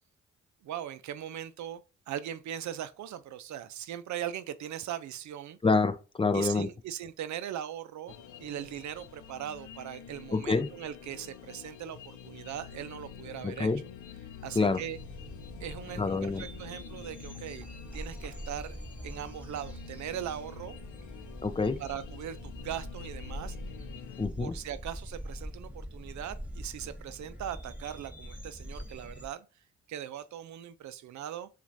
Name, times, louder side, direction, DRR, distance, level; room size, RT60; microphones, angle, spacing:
voice 1, 0.6-5.6 6.3-13.7 14.4-15.0 15.6-17.7 17.9-18.8 19.0-20.7 21.8-23.6 24.4-29.5 29.9-31.5, right 10 dB, 65° right, 0.5 m, -39 dB
voice 2, 5.6-6.7 10.3-10.7 13.4-13.8 14.6-14.8 16.0-16.4 21.4-21.8 24.2-24.5, left 4 dB, 15° left, 0.5 m, -27 dB
sound 1, 8.1-24.3, left 8 dB, 70° left, 0.7 m, -48 dB
sound 2, 15.0-29.3, equal, 5° right, 1.2 m, -44 dB
7.0 x 2.5 x 2.6 m
supercardioid pair, 55°, 32 cm